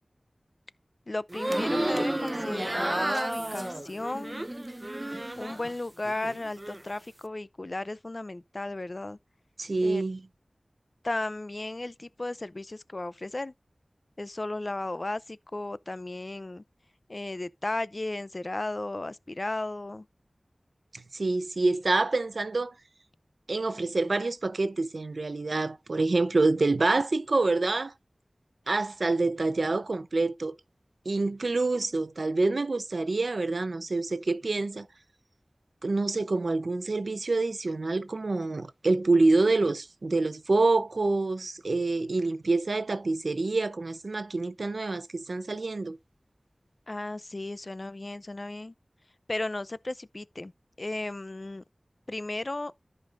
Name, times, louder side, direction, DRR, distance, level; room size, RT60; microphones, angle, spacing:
voice 1, 1.1-4.4 5.4-9.2 9.8-10.0 11.0-13.5 14.2-16.6 17.1-20.0 46.9-48.7 49.3-50.5 50.8-51.6 52.1-52.7, left 2 dB, 50° left, 0.5 m, -35 dB
sound 1, 1.3-5.7 6.1-6.8, right 1 dB, 30° right, 0.8 m, -31 dB
voice 2, 9.6-10.2 21.1-22.7 23.5-27.9 28.7-30.6 31.1-34.9 35.8-46.0, right 3 dB, 80° right, 0.7 m, -27 dB
14.0 x 5.3 x 2.5 m
wide cardioid pair, 45°, 0 cm